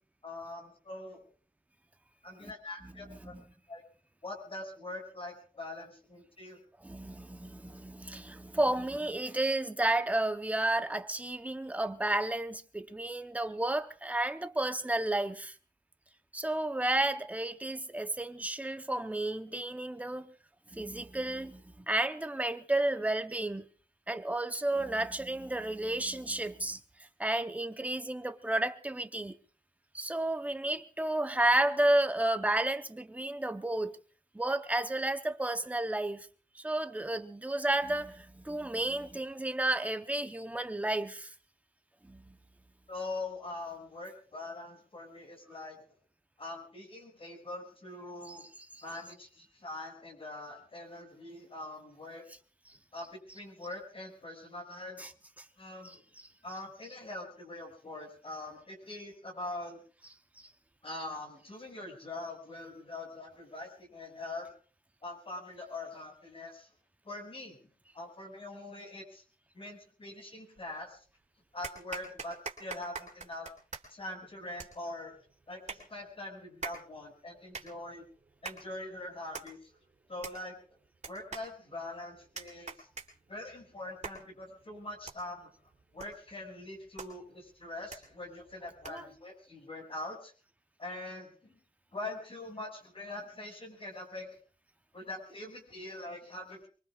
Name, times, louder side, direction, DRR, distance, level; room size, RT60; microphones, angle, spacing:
voice 1, 0.2-1.2 2.2-3.3 3.7-3.8 4.2-6.6 42.9-45.8 46.4-48.4 48.8-52.2 52.9-55.1 55.6-56.0 56.4-59.8 60.8-64.5 65.0-66.7 67.0-67.6 67.9-69.2 69.5-71.0 71.5-73.5 73.9-75.2 75.5-78.1 78.4-79.6 80.1-80.5 81.1-82.9 83.3-85.5 85.9-90.3 90.8-91.6 91.9-94.3 94.9-96.7, left 2 dB, 40° left, 6.3 m, -43 dB
voice 2, 2.8-3.4 6.8-15.5 16.3-20.3 20.7-23.7 24.1-26.8 27.2-29.4 29.9-34.0 34.3-36.3 36.5-41.3 42.0-42.3 48.3-48.8 55.0-55.1 55.8-56.0 60.4-60.5 88.9-89.1, right 1 dB, 10° right, 0.8 m, -32 dB
sound 1, 70.6-71.1 71.6-89.2, right 4 dB, 55° right, 3.4 m, -47 dB
25.0 x 23.5 x 2.4 m
wide cardioid pair, 130°, 15 cm